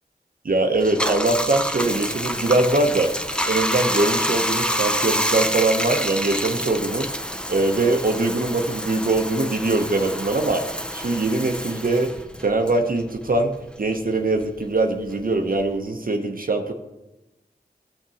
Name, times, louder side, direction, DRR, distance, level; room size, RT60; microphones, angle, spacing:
voice 1, 0.4-3.1 3.4-7.1 7.5-10.7 10.9-12.1 12.4-16.7, right 2 dB, 55° right, 4 dB, 0.8 m, -22 dB
Bathtub (filling or washing), 0.8-13.6 13.9-15.8, equal, 5° left, 0.7 m, -27 dB
14.5 x 6.3 x 4.2 m, 1.0 s
wide cardioid pair, 50°, 17 cm